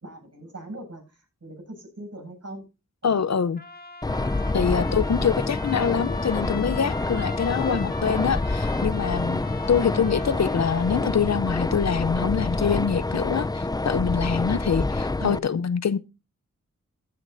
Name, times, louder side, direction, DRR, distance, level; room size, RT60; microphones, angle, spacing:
voice 1, 0.0-2.7 3.0-3.2 7.7-7.9 15.2-15.4, right 1 dB, 55° right, 7.5 m, -39 dB
voice 2, 3.0-3.6 4.5-9.4 9.7-16.0, left 7 dB, 60° left, 0.7 m, -25 dB
Trumpet, 3.6-11.2, left 2 dB, 30° left, 1.8 m, -41 dB
sound 1, 4.0-15.4, left 2 dB, 15° left, 0.4 m, -27 dB
14.5 x 9.7 x 2.6 m
cardioid pair, 55°, 30 cm